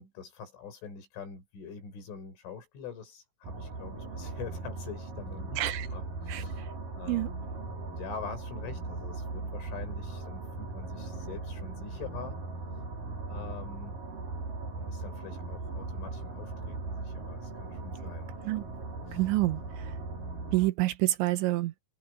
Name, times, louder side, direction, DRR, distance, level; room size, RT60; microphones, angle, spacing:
voice 1, 0.0-6.6 6.9-7.5 8.0-12.4 13.3-14.0 14.8-18.3 19.1-19.2, left 6 dB, 75° left, 8.4 m, -44 dB
sound 1, 3.4-20.7, right 3 dB, 45° right, 6.5 m, -39 dB
voice 2, 5.6-5.9 6.3-6.7 7.1-7.3 18.4-18.6 19.1-19.9 20.5-21.7, right 17 dB, 75° right, 3.2 m, -28 dB
omnidirectional pair, 5.6 m